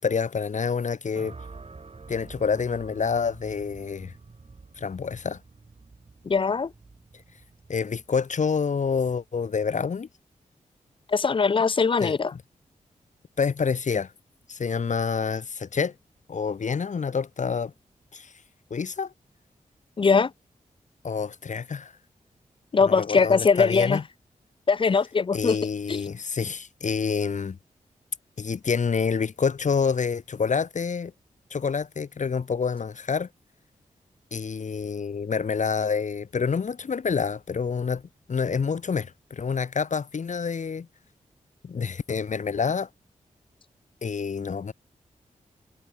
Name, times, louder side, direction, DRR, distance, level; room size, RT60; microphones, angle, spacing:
voice 1, 0.0-1.3 2.1-4.1 4.8-5.4 7.7-10.1 12.0-12.4 13.4-14.1 14.5-15.9 16.3-17.7 18.1-18.3 18.7-19.1 21.0-21.9 22.8-24.0 25.3-27.6 28.4-31.1 31.5-33.3 34.3-38.0 38.3-40.9 41.6-42.9 44.0-44.7, left 5 dB, 60° left, 1.3 m, -27 dB
sound 1, 1.1-9.4, right 4 dB, 45° right, 7.9 m, -47 dB
voice 2, 6.3-6.7 11.1-12.3 20.0-20.3 22.7-24.0 24.7-25.6 25.9-26.0, left 5 dB, 40° left, 0.5 m, -21 dB
cardioid pair, 55°, 14 cm